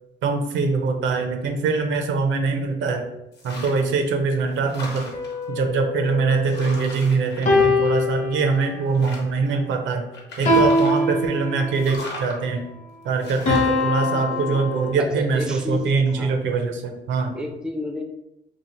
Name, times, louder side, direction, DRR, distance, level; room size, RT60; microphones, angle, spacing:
voice 1, 0.2-3.0 3.4-5.1 5.5-10.0 10.4-12.6 13.0-17.3, right 4 dB, 75° right, 5 dB, 0.5 m, -23 dB
sound 1, 3.3-4.0 4.4-5.4 6.1-6.2 6.5-8.2 8.6-9.5 10.1-11.1 11.7-12.4 13.2-13.8, left 1 dB, 60° left, 1.0 m, -38 dB
sound 2, 5.1-6.9 7.5-8.9 10.5-11.9 13.5-14.9, left 2 dB, 40° left, 0.7 m, -23 dB
voice 2, 14.1-14.6 15.0-16.6 17.3-18.0, left 1 dB, 5° right, 4 dB, 0.3 m, -31 dB
2.8 x 2.5 x 2.9 m, 0.89 s
cardioid pair, 90°, 20 cm